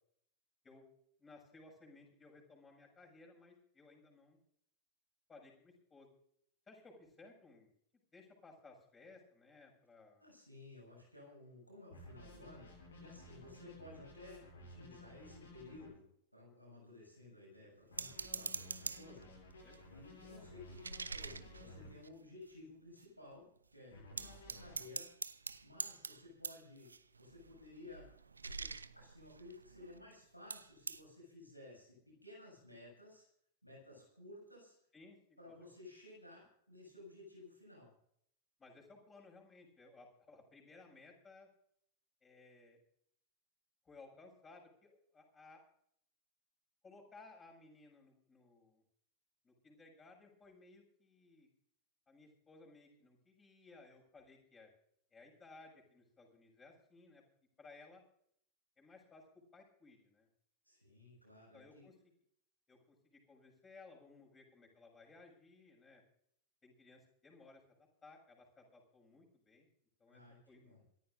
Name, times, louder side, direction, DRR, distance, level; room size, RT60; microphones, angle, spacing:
voice 1, 1.2-4.4 5.3-6.1 6.7-7.7 8.1-10.2 13.2-13.3 19.6-20.0 23.9-24.0 34.9-35.5 38.6-41.5 42.2-42.8 43.9-45.6 46.8-48.8 49.4-51.5 52.1-54.7 55.1-57.2 57.6-58.0 58.8-59.2 59.5-60.3 61.5-61.9 62.7-66.0 66.6-67.6 68.0-69.7 70.0-70.2 70.5-70.8, left 3 dB, 20° left, 1 dB, 7.1 m, -60 dB
voice 2, 10.2-16.1 16.3-25.1 25.6-26.9 27.2-33.3 33.6-34.7 35.4-37.9 60.6-61.9 70.1-70.8, left 2 dB, 90° left, -2 dB, 7.3 m, -56 dB
sound 1, 11.9-15.9 17.9-21.9 23.9-24.8, left 2 dB, 70° left, 7.5 m, -55 dB
sound 2, 18.0-19.2 19.7-22.5 23.0-23.1 23.3-23.7 24.2-30.1 30.5-31.0, right 4 dB, 75° right, 0.8 m, -46 dB
27.5 x 14.0 x 2.7 m, 0.68 s
figure-of-eight pair, 90°, 0 cm